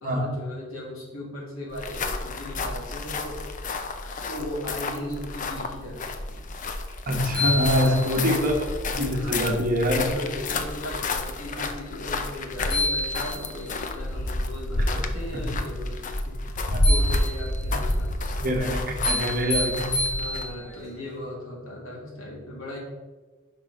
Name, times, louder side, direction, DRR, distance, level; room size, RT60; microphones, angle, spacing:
voice 1, 0.0-3.4 4.3-6.0 6.3-6.4 7.4-8.4 9.1-9.5 9.9-16.4 16.8-18.4 20.1-22.8, left 1 dB, 75° left, -2 dB, 2.0 m, -37 dB
sound 1, 1.7-20.6, left 2 dB, 40° left, 0.5 m, -30 dB
sound 2, 6.9-7.0 7.3-8.4 12.3-12.4 12.7-13.8 16.8-17.7 19.0-20.8, left 1 dB, 55° left, 2.2 m, -29 dB
voice 2, 7.1-8.6 9.0-10.0 15.3-15.5 16.7-16.8 18.4-20.1, equal, 40° right, 1 dB, 1.1 m, -24 dB
5.5 x 4.7 x 5.1 m, 1.3 s
head